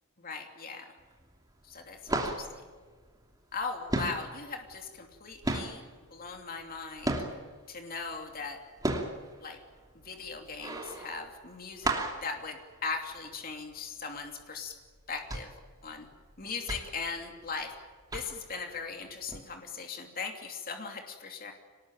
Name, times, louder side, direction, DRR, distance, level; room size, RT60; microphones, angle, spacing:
voice 1, 0.2-0.9 1.7-2.5 3.5-5.8 6.1-7.2 7.7-8.6 9.4-9.6 10.0-11.9 12.2-14.7 15.1-15.5 15.8-16.1 16.4-17.7 18.1-21.5, left 4 dB, 40° left, 3 dB, 2.9 m, -39 dB
sound 1, 1.0-1.4 1.7-3.6 3.9-7.6 8.1-13.4 13.7-13.8 14.2-14.4 15.0-17.7 18.1-18.6 19.3-19.4, right 2 dB, 15° right, 3.0 m, -34 dB
25.5 x 19.5 x 9.2 m, 1.5 s
head